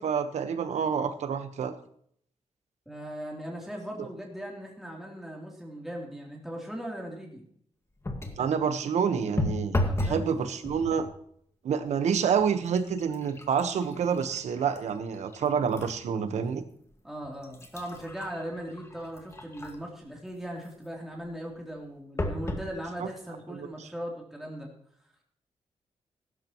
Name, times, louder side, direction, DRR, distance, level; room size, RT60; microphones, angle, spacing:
voice 1, 0.0-1.7 4.0-4.1 8.4-9.8 10.0-11.1 11.6-16.6 23.0-23.1 23.5-23.9, right 7 dB, 90° right, 10 dB, 1.2 m, -28 dB
voice 2, 2.8-7.4 9.8-10.2 17.0-24.7, equal, 5° right, -2 dB, 3.3 m, -39 dB
sound 1, 8.0-8.5 9.4-10.3 10.6-11.1 11.9-12.0 12.4-16.0 16.5-16.6 17.2-20.0 22.2-22.7 23.4-23.5 23.7-23.8, left 1 dB, 25° left, 1.8 m, -34 dB
15.5 x 12.5 x 3.1 m, 0.63 s
cardioid pair, 100°, 11 cm